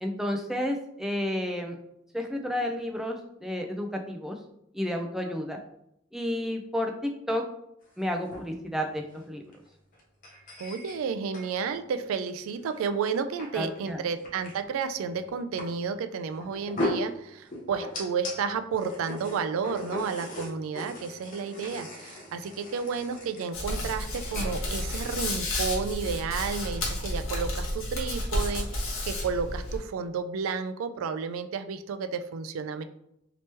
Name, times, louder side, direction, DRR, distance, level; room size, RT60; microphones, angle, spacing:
voice 1, 0.0-1.8 2.1-4.4 4.7-5.6 6.1-7.4 8.0-9.4 13.5-14.0, left 1 dB, ahead, 3 dB, 0.3 m, -31 dB
sound 1, 7.9-8.5 9.1-9.2 9.5-9.7 9.9-11.6 12.7-12.8 13.4-13.8 14.1-14.6 14.8-14.9 15.2-15.6 16.3-18.4 18.7-25.4, left 1 dB, 40° left, 0.7 m, -38 dB
voice 2, 10.6-32.8, right 5 dB, 85° right, 9 dB, 0.3 m, -32 dB
Hands, 23.5-29.8, left 1 dB, 80° left, 1.0 m, -31 dB
3.0 x 2.9 x 3.3 m, 0.79 s
head